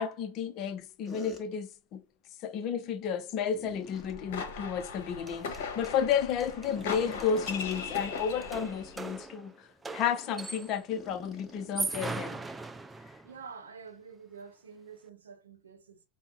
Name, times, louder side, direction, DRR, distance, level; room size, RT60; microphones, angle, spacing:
voice 1, 0.0-2.0 2.4-9.7 9.9-12.4, left 7 dB, 40° left, 0.5 m, -32 dB
sound 1, 1.0-1.4 3.5-4.2 6.6-8.4 8.7-8.9 9.5-9.6 10.9-12.7, left 3 dB, 15° left, 1.0 m, -47 dB
sound 2, 3.9-9.0, left 5 dB, 55° left, 0.9 m, -39 dB
sound 3, 4.9-5.0 5.3-10.9 11.6-13.4, right 3 dB, 10° right, 0.3 m, -40 dB
voice 2, 13.2-16.0, right 6 dB, 70° right, 0.7 m, -48 dB
5.6 x 2.1 x 2.5 m
figure-of-eight pair, 85°, 0 cm